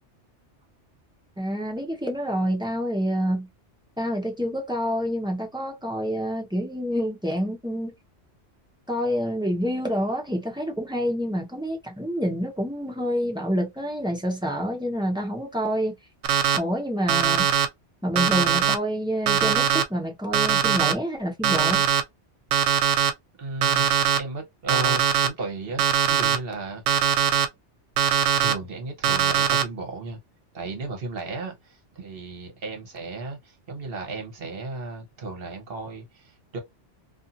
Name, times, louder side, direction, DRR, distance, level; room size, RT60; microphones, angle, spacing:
voice 1, 1.4-3.5 4.0-7.9 8.9-15.9 16.5-17.5 18.0-21.8, equal, 5° right, 0.7 m, -27 dB
Alarm, 16.2-16.6 17.1-17.7 18.2-18.8 19.3-19.8 20.3-20.9 21.4-22.0 22.5-23.1 23.6-24.2 24.7-25.3 25.8-26.4 26.9-27.5 28.0-28.5 29.0-29.6, right 8 dB, 85° right, 0.9 m, -21 dB
voice 2, 23.4-23.9 24.1-26.8 28.3-30.2 30.5-36.6, right 3 dB, 55° right, 1.1 m, -35 dB
2.6 x 2.4 x 2.6 m
omnidirectional pair, 1.2 m